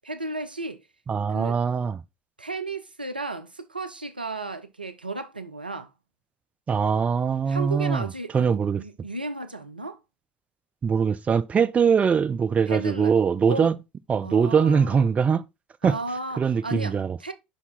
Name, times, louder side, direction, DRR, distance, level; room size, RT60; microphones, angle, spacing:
voice 1, 0.0-0.9 1.3-1.6 2.4-5.9 6.9-7.0 7.5-10.0 12.7-13.1 13.5-13.7 14.2-15.0 15.8-17.3, right 2 dB, 90° right, 0.5 m, -34 dB
voice 2, 1.1-2.0 6.7-8.0 8.3-8.8 10.8-13.8 14.1-15.4 15.8-16.0 16.4-17.2, right 6 dB, 30° right, 0.5 m, -22 dB
5.4 x 5.0 x 3.8 m
figure-of-eight pair, 60°, 5 cm